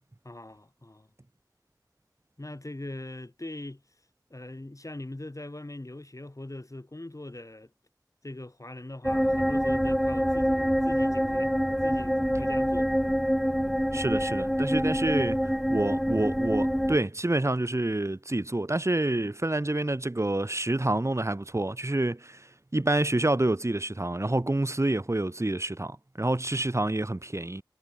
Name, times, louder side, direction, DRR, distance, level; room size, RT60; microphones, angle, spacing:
voice 1, 0.2-1.1 2.4-3.8 4.3-7.7 8.2-11.5 11.8-12.9, left 1 dB, 45° left, 5.4 m, -41 dB
sound 1, 9.0-17.0, equal, ahead, 0.6 m, -26 dB
voice 2, 13.9-22.4 22.7-27.6, right 2 dB, 40° right, 1.6 m, -28 dB
wide cardioid pair, 45°, 7 cm